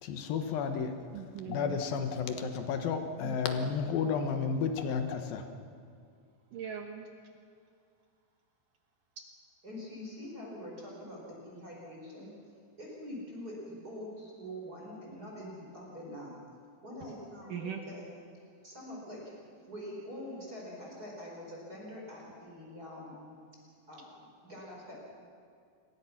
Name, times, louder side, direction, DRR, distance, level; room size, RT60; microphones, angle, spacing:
voice 1, 0.0-0.9 1.5-5.4, left 6 dB, 65° left, 6 dB, 2.6 m, -32 dB
voice 2, 1.1-1.8 3.2-3.4 6.5-7.1 17.5-17.8, right 8 dB, 70° right, 3 dB, 2.0 m, -40 dB
voice 3, 9.6-12.3 12.8-16.3 16.8-18.1 18.6-19.2 19.6-23.4 23.9-25.0, left 1 dB, 20° right, -4 dB, 5.0 m, -44 dB
28.0 x 22.0 x 6.0 m, 2.3 s
omnidirectional pair, 5.6 m